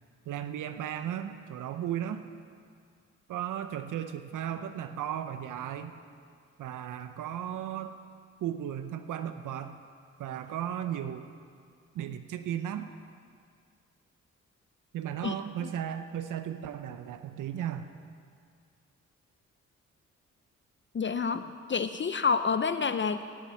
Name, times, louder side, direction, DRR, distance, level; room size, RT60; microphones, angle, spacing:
voice 1, 0.3-2.2 3.3-5.9 6.6-7.9 8.4-9.8 10.2-11.3 11.9-12.9 14.9-17.9, right 10 dB, 85° right, 9 dB, 0.7 m, -35 dB
voice 2, 20.9-23.4, left 5 dB, 40° left, 10 dB, 0.6 m, -28 dB
15.0 x 6.7 x 9.2 m, 2.2 s
cardioid pair, 55°, 30 cm